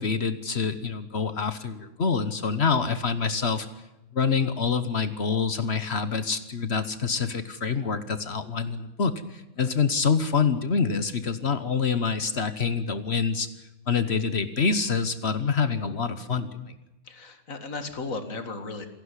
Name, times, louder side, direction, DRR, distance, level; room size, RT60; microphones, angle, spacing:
voice 1, 0.0-3.7 4.1-13.5 13.9-16.7, left 5 dB, 50° left, 12 dB, 1.3 m, -26 dB
voice 2, 17.1-18.9, left 3 dB, 70° left, 8 dB, 2.4 m, -35 dB
27.0 x 11.5 x 9.8 m, 0.96 s
omnidirectional pair, 1.5 m